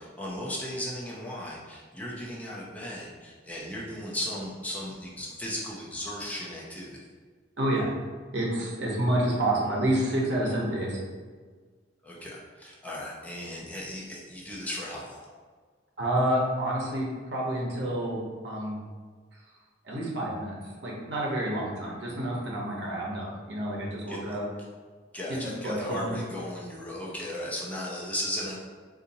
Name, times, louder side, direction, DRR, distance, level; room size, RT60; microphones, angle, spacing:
voice 1, 0.0-7.0 12.0-15.3 24.1-24.2 25.1-28.5, left 1 dB, 10° left, -5 dB, 0.5 m, -36 dB
voice 2, 7.6-7.9 8.3-11.0 16.0-18.2 18.4-18.8 19.8-20.5 20.8-24.4 25.3-26.1, right 1 dB, 65° right, -3 dB, 0.9 m, -28 dB
4.0 x 2.6 x 2.7 m, 1.5 s
head